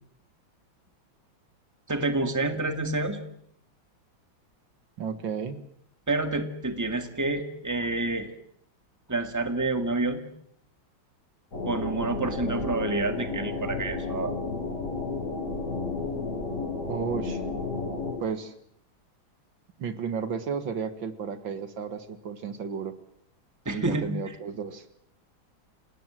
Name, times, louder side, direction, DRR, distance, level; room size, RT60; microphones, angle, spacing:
voice 1, 1.9-3.2 6.1-8.3 9.1-10.2 11.6-14.3 23.7-24.1, right 2 dB, 10° right, 7 dB, 2.0 m, -28 dB
voice 2, 5.0-5.6 16.9-17.4 18.2-18.5 19.8-23.0 23.7-24.8, right 6 dB, 70° right, 10 dB, 2.3 m, -33 dB
sound 1, 11.5-18.2, left 3 dB, 40° left, 4.5 m, -32 dB
28.5 x 19.0 x 7.7 m, 0.69 s
omnidirectional pair, 2.2 m